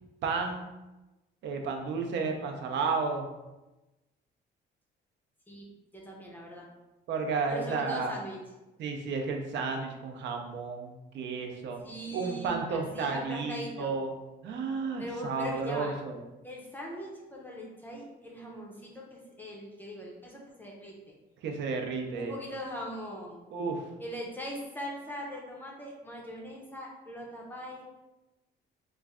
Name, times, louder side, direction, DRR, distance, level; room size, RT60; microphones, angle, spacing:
voice 1, 0.2-0.7 1.4-3.3 7.1-8.1 8.8-11.8 12.1-14.1 14.4-16.2 21.4-22.3 23.5-23.8, right 4 dB, 70° right, 3 dB, 0.6 m, -32 dB
voice 2, 5.9-6.7 7.5-8.4 11.8-13.9 15.0-16.0 16.4-21.1 22.1-23.4 24.0-27.8, equal, 10° left, -3 dB, 0.5 m, -41 dB
3.1 x 2.4 x 3.5 m, 1.0 s
cardioid pair, 150°, 20 cm